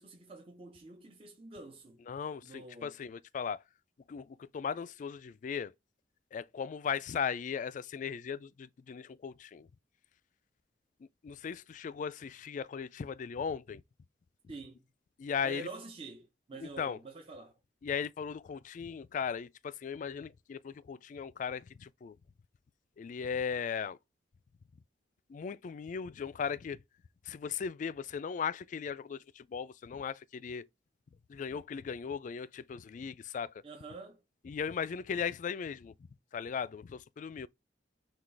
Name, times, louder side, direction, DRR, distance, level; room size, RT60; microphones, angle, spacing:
voice 1, 0.0-2.0 2.4-3.0 14.5-14.9 15.4-17.6 33.6-34.2, right 3 dB, 30° right, 0.7 m, -47 dB
voice 2, 2.1-3.6 4.1-5.7 6.3-9.7 11.2-13.8 15.2-15.7 16.6-17.0 17.8-22.2 23.0-24.0 25.3-26.8 27.3-30.7 31.3-33.5 34.4-35.9 36.3-37.5, left 6 dB, 45° left, 0.3 m, -37 dB
6.0 x 2.3 x 3.2 m
head